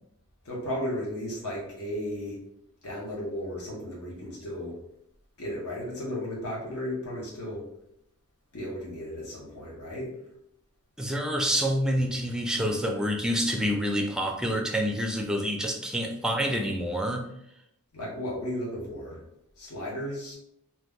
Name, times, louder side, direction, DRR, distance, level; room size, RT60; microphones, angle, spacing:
voice 1, 0.4-2.4 2.8-4.8 5.4-7.7 8.5-10.1 17.9-19.2 19.6-20.3, equal, 70° left, -4 dB, 1.0 m, -34 dB
voice 2, 11.0-17.3, equal, 5° right, 2 dB, 0.4 m, -27 dB
2.8 x 2.2 x 3.5 m, 0.77 s
head